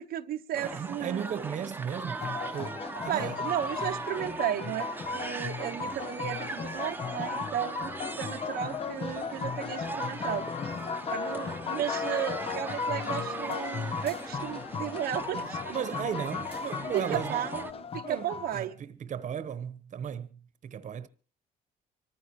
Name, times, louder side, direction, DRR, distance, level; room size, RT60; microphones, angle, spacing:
voice 1, 0.0-1.5 3.1-10.5 11.1-15.7 16.9-17.7 17.9-18.8, right 11 dB, 65° right, 0.9 m, -34 dB
sound 1, 0.5-17.7, right 3 dB, 10° right, 1.0 m, -39 dB
voice 2, 0.6-2.3 2.5-3.4 15.3-17.4 17.8-21.1, right 8 dB, 45° right, 1.1 m, -36 dB
sound 2, 2.2-18.6, left 6 dB, 35° left, 0.7 m, -36 dB
25.0 x 14.5 x 3.1 m
cardioid pair, 110°, 17 cm